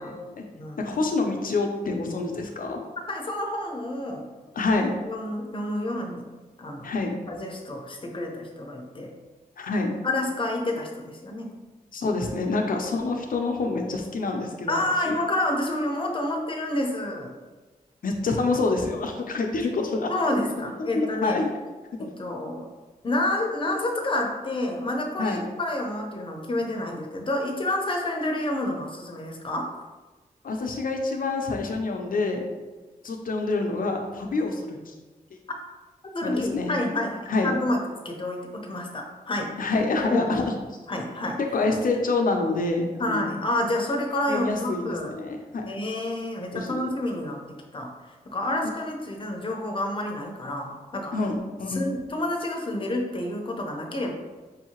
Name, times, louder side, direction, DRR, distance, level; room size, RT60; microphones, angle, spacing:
voice 1, 0.0-0.4 0.8-2.8 4.6-5.0 6.8-7.1 9.6-9.9 11.9-15.1 18.0-20.1 20.9-21.5 25.2-25.4 30.4-32.4 33.0-34.9 36.2-36.7 37.3-37.5 39.6-40.5 41.5-43.4 44.3-45.7 46.5-46.9 51.1-51.9, left 3 dB, 70° left, 3 dB, 0.7 m, -27 dB
voice 2, 0.6-0.9 3.1-4.3 5.1-6.3 6.6-6.9 7.3-9.1 10.0-11.6 14.7-17.3 20.1-21.4 22.0-22.7 23.0-29.7 36.1-39.6 40.1-40.2 40.9-41.4 43.0-45.1 45.6-47.5 47.7-47.9 48.3-51.2 51.7-54.1, left 1 dB, 35° left, 1 dB, 0.8 m, -29 dB
5.3 x 2.8 x 2.9 m, 1.3 s
wide cardioid pair, 80°, 15 cm